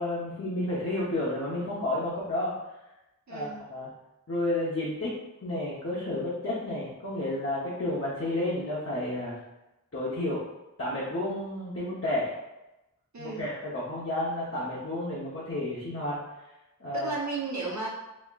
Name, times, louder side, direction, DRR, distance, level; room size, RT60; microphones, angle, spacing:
voice 1, 0.0-2.5 3.3-3.9 4.3-5.1 5.4-9.4 9.9-10.4 10.8-12.3 13.2-16.2 16.8-17.1, left 1 dB, 45° left, -8 dB, 0.9 m, -31 dB
voice 2, 3.3-3.6 12.3-12.4 13.1-13.5 16.9-17.9, right 3 dB, 60° right, -4 dB, 0.9 m, -34 dB
4.1 x 2.9 x 2.4 m, 0.95 s
wide cardioid pair, 45°, 32 cm